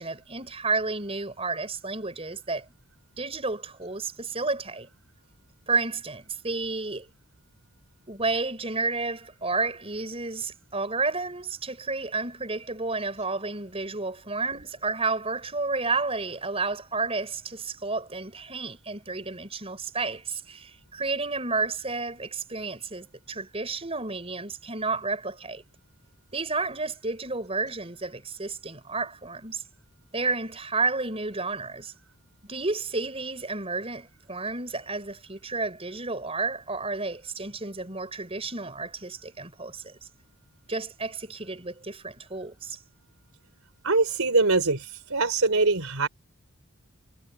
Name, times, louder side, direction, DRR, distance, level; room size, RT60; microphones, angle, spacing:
voice 1, 0.0-2.7 3.2-4.9 5.7-7.1 8.1-25.6 26.3-29.6 30.1-31.9 32.5-40.0 40.7-42.8, right 3 dB, 25° right, 5.7 m, -31 dB
voice 2, 43.8-46.1, right 3 dB, 80° right, 3.5 m, -23 dB
head